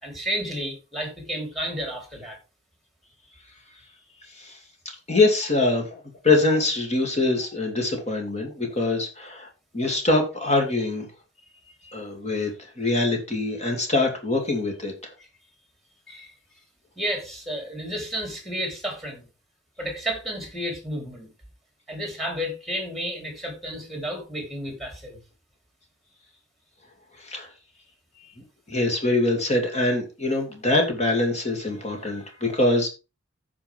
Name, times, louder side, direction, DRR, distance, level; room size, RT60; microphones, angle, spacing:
voice 1, 0.0-2.4 16.1-16.3 17.0-19.3 19.8-21.3 21.9-25.2, equal, ahead, 3.5 m, -31 dB
voice 2, 5.1-9.5 9.7-11.1 11.8-14.9 27.2-27.5 28.7-32.9, left 2 dB, 35° left, 2.7 m, -24 dB
15.0 x 5.0 x 3.5 m
head